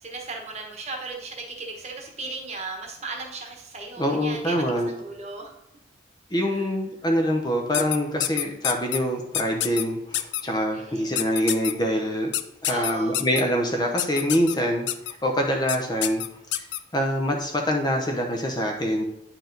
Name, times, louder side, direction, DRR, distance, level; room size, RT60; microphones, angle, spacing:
voice 1, 0.0-5.5 6.5-6.6 10.7-11.3 12.7-13.2, right 3 dB, 35° right, 1 dB, 1.1 m, -36 dB
voice 2, 4.0-4.9 6.3-12.3 12.6-14.9 15.2-16.2 16.5-16.7 16.9-19.0, equal, 20° left, 2 dB, 0.7 m, -25 dB
sound 1, 7.7-9.0 9.3-9.8 10.1-10.4 11.2-11.7 12.3-13.4 14.0-14.6 14.9-15.1 15.7-15.8 16.0-16.8, left 13 dB, 60° left, 0.4 m, -26 dB
9.3 x 4.6 x 3.9 m, 0.83 s
head